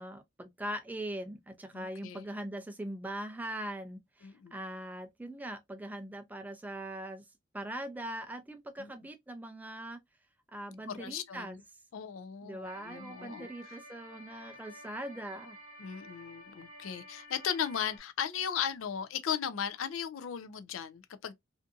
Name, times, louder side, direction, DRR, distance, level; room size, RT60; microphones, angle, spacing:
voice 1, 0.0-7.2 7.5-10.0 10.5-11.6 12.4-15.6, right 1 dB, 10° right, 0.4 m, -41 dB
voice 2, 1.7-2.2 4.2-4.5 8.8-8.9 10.9-11.6 11.9-13.5 15.8-21.3, left 8 dB, 80° left, 0.4 m, -37 dB
sound 1, 12.6-18.0, equal, 45° left, 1.2 m, -51 dB
2.5 x 2.5 x 2.3 m
head